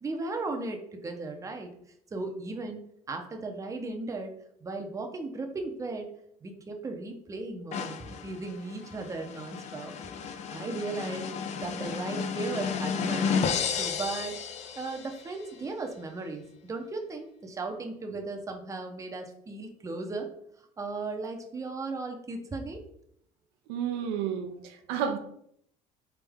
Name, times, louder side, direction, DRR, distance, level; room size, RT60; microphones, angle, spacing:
voice 1, 0.0-1.7 2.1-4.3 4.6-6.1 6.4-11.3 11.6-14.4 14.8-20.3 20.8-22.8, right 3 dB, 20° right, 3 dB, 0.7 m, -36 dB
sound 1, 7.7-15.3, left 6 dB, 45° left, 0.5 m, -33 dB
voice 2, 23.7-25.2, right 8 dB, 90° right, 6 dB, 0.6 m, -31 dB
4.1 x 3.5 x 3.5 m, 0.70 s
cardioid pair, 115°, 16 cm